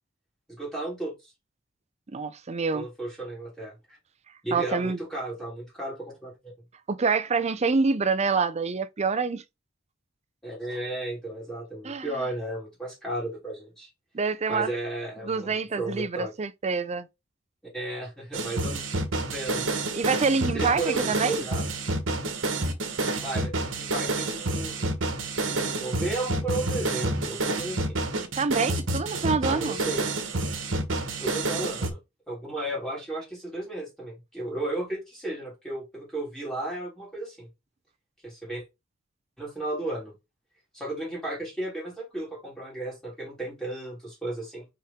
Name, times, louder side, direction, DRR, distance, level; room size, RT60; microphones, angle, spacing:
voice 1, 0.5-1.3 2.7-4.0 4.4-6.3 10.4-13.9 14.5-16.3 17.7-18.8 19.3-19.7 20.5-21.6 23.2-24.8 25.5-28.0 29.4-30.1 31.2-32.0 32.3-37.5 38.2-38.6 39.4-40.1 40.7-44.7, right 1 dB, 5° left, 3.2 m, -34 dB
voice 2, 2.1-2.9 4.5-5.0 6.9-9.4 11.8-12.1 14.1-14.7 15.2-17.1 19.9-21.4 28.4-29.8, right 4 dB, 35° right, 0.5 m, -26 dB
sound 1, 18.3-31.9, right 2 dB, 80° right, 1.4 m, -29 dB
5.6 x 4.9 x 3.7 m
head